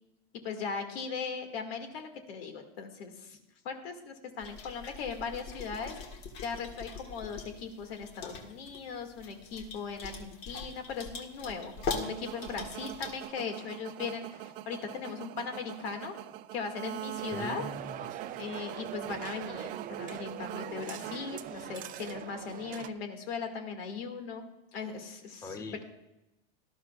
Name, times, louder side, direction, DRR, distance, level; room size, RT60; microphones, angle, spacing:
voice 1, 0.4-3.4 3.6-5.9 6.4-16.1 16.5-17.6 18.4-25.4, left 5 dB, 80° left, 5 dB, 2.1 m, -38 dB
sound 1, 4.4-13.3, left 4 dB, 45° left, 1.8 m, -42 dB
sound 2, 11.4-21.9, right 14 dB, 65° right, 0.7 m, -44 dB
sound 3, 17.2-22.9, right 11 dB, 30° right, 0.5 m, -42 dB
voice 2, 17.3-18.0 25.4-25.8, left 3 dB, 10° left, 6 dB, 0.7 m, -41 dB
18.0 x 12.5 x 2.4 m, 0.94 s
supercardioid pair, 140°, 30 cm